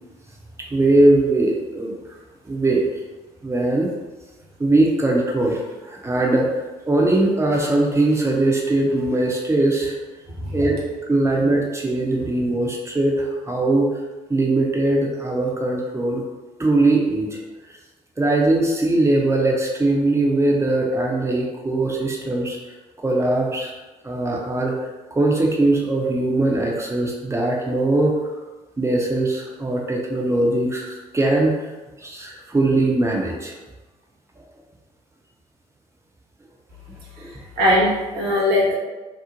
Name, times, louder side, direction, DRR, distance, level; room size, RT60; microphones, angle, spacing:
voice 1, 0.7-1.9 2.4-2.8 3.4-3.9 4.6-10.0 10.5-10.8 11.1-13.9 14.3-16.2 16.6-17.4 18.2-22.6 23.0-23.7 24.0-24.7 25.1-28.2 28.8-31.7 32.0-33.5 37.2-37.3, right 2 dB, 15° right, -1 dB, 0.6 m, -20 dB
voice 2, 37.2-38.7, left 1 dB, 55° right, -6 dB, 0.9 m, -21 dB
3.0 x 2.0 x 2.5 m, 1.2 s
figure-of-eight pair, 50°, 19 cm